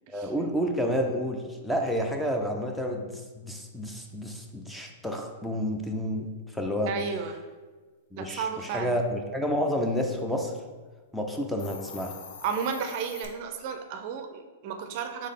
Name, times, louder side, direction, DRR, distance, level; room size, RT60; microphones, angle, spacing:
voice 1, 0.1-6.9 8.1-10.5 11.1-12.2, equal, 5° left, 2 dB, 0.5 m, -30 dB
voice 2, 6.8-7.4 8.2-8.9 12.4-15.3, right 6 dB, 50° right, 6 dB, 0.5 m, -33 dB
Hiss, 11.4-13.3, left 6 dB, 60° left, 0.5 m, -44 dB
3.7 x 3.6 x 3.6 m, 1.4 s
hypercardioid pair, 115°, 0 cm